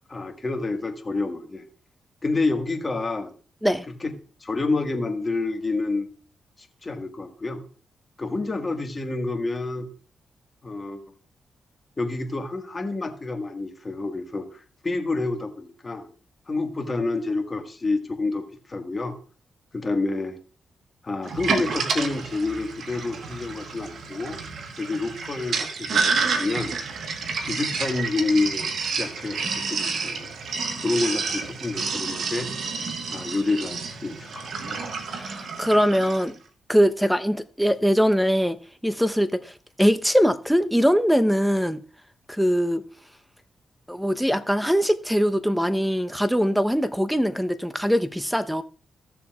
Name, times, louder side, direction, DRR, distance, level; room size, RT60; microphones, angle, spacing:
voice 1, 0.1-1.6 2.2-3.3 4.0-4.1 4.4-6.1 6.6-7.6 8.2-9.9 10.6-11.0 12.0-16.1 16.5-19.2 19.7-20.4 21.0-24.4 24.8-26.7 27.4-28.7 29.0-29.4 29.7-30.3 30.8-32.5 33.1-34.8, left 3 dB, 35° left, 1.7 m, -28 dB
Sink (filling or washing), 21.3-36.3, right 4 dB, 70° right, 1.3 m, -29 dB
voice 2, 35.1-36.4 36.7-41.8 42.3-42.8 43.9-48.6, equal, ahead, 0.8 m, -22 dB
15.5 x 6.9 x 2.4 m
supercardioid pair, 55°, 0 cm